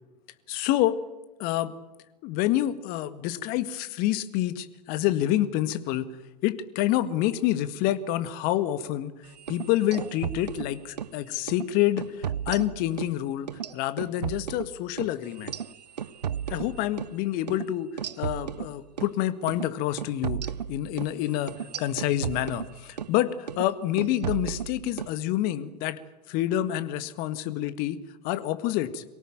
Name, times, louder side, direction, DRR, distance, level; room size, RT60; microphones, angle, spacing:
voice 1, 0.5-1.0 1.4-1.7 2.2-6.1 6.4-9.1 9.5-13.5 13.7-15.5 16.5-17.9 18.2-20.4 20.7-26.0 26.3-29.0, left 13 dB, 45° left, 13 dB, 1.8 m, -27 dB
sound 1, 9.4-11.2 11.5-11.7 12.0-13.2 13.5-17.2 17.5-17.6 18.0-19.1 19.5-19.7 20.0-23.2 23.5-23.7 24.0-25.1, right 8 dB, 80° right, 0.7 m, -34 dB
24.0 x 17.5 x 9.0 m, 1.1 s
figure-of-eight pair, 90°, 21 cm